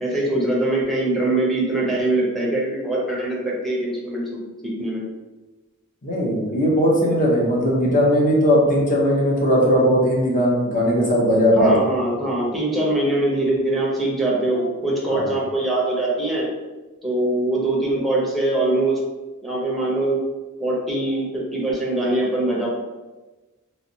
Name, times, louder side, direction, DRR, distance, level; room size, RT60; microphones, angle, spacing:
voice 1, 0.0-5.1 11.6-16.5 17.0-19.0 19.4-20.2 20.6-22.7, right 2 dB, ahead, -5 dB, 0.8 m, -22 dB
voice 2, 6.0-11.7 15.1-15.3, equal, 40° left, -3 dB, 0.9 m, -18 dB
3.2 x 3.0 x 2.7 m, 1.2 s
head